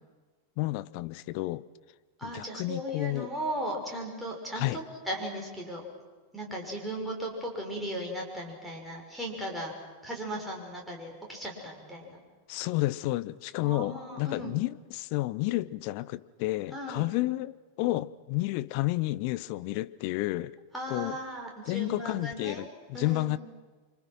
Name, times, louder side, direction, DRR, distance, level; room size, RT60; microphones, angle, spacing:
voice 1, 0.6-1.7 2.2-3.3 4.5-4.8 12.5-20.6 20.9-21.2 21.7-23.4, left 18 dB, 45° left, 0.8 m, -31 dB
voice 2, 2.2-5.8 6.3-9.7 10.0-12.2 13.6-14.6 16.7-17.1 20.7-22.7 22.9-23.4, equal, 5° right, 6.4 m, -37 dB
29.0 x 25.5 x 6.3 m
figure-of-eight pair, 90°, 0 cm